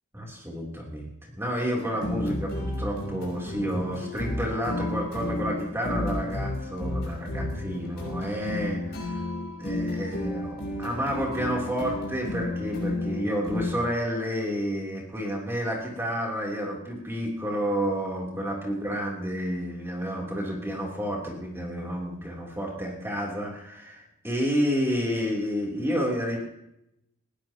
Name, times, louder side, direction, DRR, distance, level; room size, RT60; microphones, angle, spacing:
voice 1, 0.1-9.2 9.6-26.4, equal, 10° right, -2 dB, 3.3 m, -30 dB
sound 1, 1.8-13.7, left 1 dB, 45° left, 6.1 m, -32 dB
20.5 x 16.0 x 3.0 m, 0.82 s
head